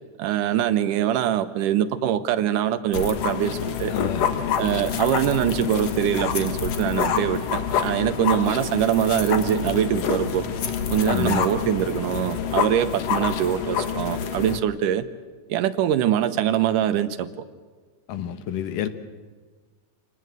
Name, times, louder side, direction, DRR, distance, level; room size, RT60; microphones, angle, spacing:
voice 1, 0.2-3.9 4.6-10.5 10.9-15.1 15.5-17.3, right 10 dB, 85° right, 12 dB, 2.5 m, -23 dB
sound 1, 2.9-14.6, left 7 dB, 60° left, 2.3 m, -27 dB
voice 2, 3.9-4.6 11.1-11.5 18.1-18.9, left 10 dB, 80° left, 10 dB, 2.8 m, -29 dB
26.0 x 19.0 x 7.8 m, 1.4 s
omnidirectional pair, 3.7 m